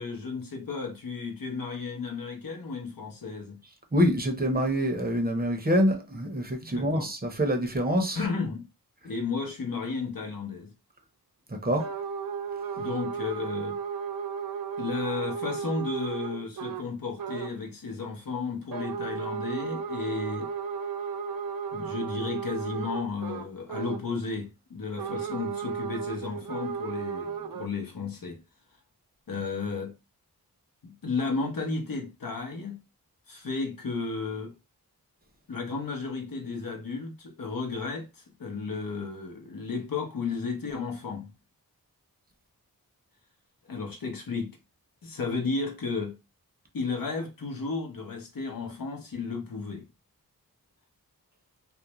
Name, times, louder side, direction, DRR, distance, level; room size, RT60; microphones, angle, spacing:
voice 1, 0.0-3.6 6.6-7.1 8.1-8.6 9.0-10.7 12.8-13.8 14.8-20.5 21.7-28.4 29.3-29.9 30.8-32.8 33.3-34.5 35.5-41.3 43.6-44.6 45.0-46.2 46.7-49.8, left 4 dB, 65° left, 0.8 m, -33 dB
voice 2, 3.9-8.2 11.6-11.8, equal, 25° right, 0.7 m, -25 dB
sound 1, 11.8-16.9 17.2-17.5 18.7-24.1 25.0-27.7, right 6 dB, 70° right, 0.5 m, -34 dB
2.4 x 2.0 x 2.9 m
wide cardioid pair, 60°, 37 cm